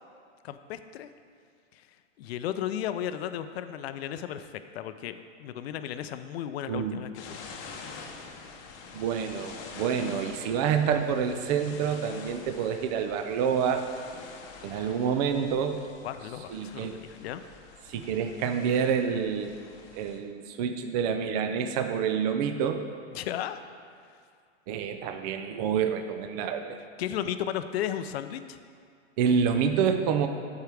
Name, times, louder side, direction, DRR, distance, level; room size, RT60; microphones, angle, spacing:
voice 1, 0.4-1.1 1.7-1.8 2.2-7.4 16.0-17.4 23.1-23.6 27.0-28.6, left 10 dB, 55° left, 10 dB, 0.5 m, -34 dB
voice 2, 6.7-7.0 8.9-13.8 14.6-15.8 16.5-17.0 17.9-19.5 19.9-22.9 24.7-26.8 29.2-30.3, right 7 dB, 35° right, 7 dB, 0.5 m, -27 dB
sound 1, 7.1-20.2, left 5 dB, 35° left, 0.8 m, -46 dB
13.0 x 4.6 x 3.4 m, 2.2 s
hypercardioid pair, 140°, 37 cm